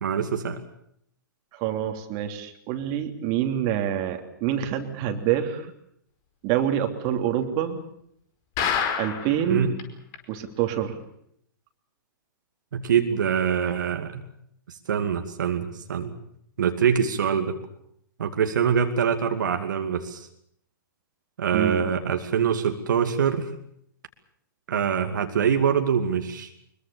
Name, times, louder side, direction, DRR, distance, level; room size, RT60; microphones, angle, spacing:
voice 1, 0.0-0.6 9.5-9.7 12.7-14.3 14.7-16.1 16.6-17.6 18.2-20.3 21.4-23.5 24.7-26.5, right 7 dB, 65° right, 5 dB, 2.5 m, -24 dB
voice 2, 1.5-5.6 6.4-7.8 9.0-9.7 10.3-11.0 21.5-21.8, right 10 dB, 35° right, 6 dB, 3.1 m, -26 dB
sound 1, 8.6-9.4 9.8-9.9 10.1-10.2 10.7-10.8, left 7 dB, 35° left, 5.0 m, -26 dB
24.0 x 22.5 x 7.1 m, 0.71 s
figure-of-eight pair, 115°, 11 cm